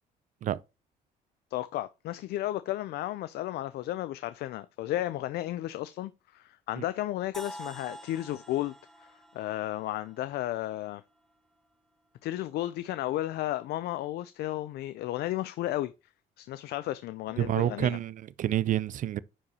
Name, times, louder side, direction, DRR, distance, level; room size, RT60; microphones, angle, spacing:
voice 1, 1.5-8.7 9.0-11.0 12.2-15.9 16.4-18.0, left 14 dB, 70° left, 0.5 m, -33 dB
sound 1, 7.3-11.3, equal, ahead, 0.7 m, -47 dB
voice 2, 17.4-19.2, right 11 dB, 50° right, 0.5 m, -28 dB
10.0 x 4.9 x 2.9 m
cardioid pair, 110°, 17 cm